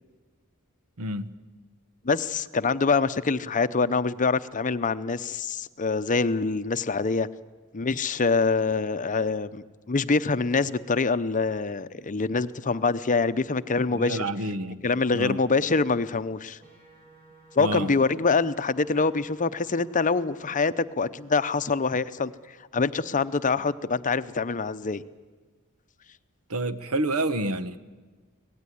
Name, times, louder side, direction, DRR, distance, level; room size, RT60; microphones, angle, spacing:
voice 1, 1.0-1.3 13.9-14.8 15.1-15.4 17.6-17.9 26.5-27.8, right 1 dB, 80° right, 13 dB, 1.2 m, -29 dB
voice 2, 2.0-7.3 7.7-14.2 14.8-16.6 17.6-22.3 22.7-25.0, left 4 dB, 35° left, 13 dB, 0.7 m, -25 dB
sound 1, 16.6-20.6, right 3 dB, 40° right, 4.7 m, -54 dB
25.0 x 18.5 x 10.0 m, 1.4 s
head